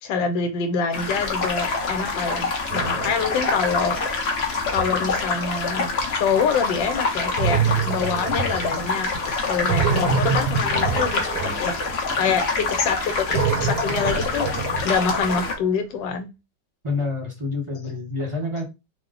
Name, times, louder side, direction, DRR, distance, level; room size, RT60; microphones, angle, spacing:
voice 1, 0.0-4.0 4.7-11.3 11.6-14.5 14.8-16.3, left 5 dB, 90° left, 7 dB, 1.4 m, -26 dB
sound 1, 0.9-15.5, left 4 dB, 55° left, 0.7 m, -26 dB
sound 2, 2.7-4.1 4.6-5.1 7.4-9.1 9.5-12.3 13.1-15.6, right 6 dB, 80° right, 1.3 m, -26 dB
voice 2, 16.8-18.6, left 3 dB, 25° right, -1 dB, 0.8 m, -27 dB
3.0 x 2.1 x 3.7 m, 0.24 s
omnidirectional pair, 2.0 m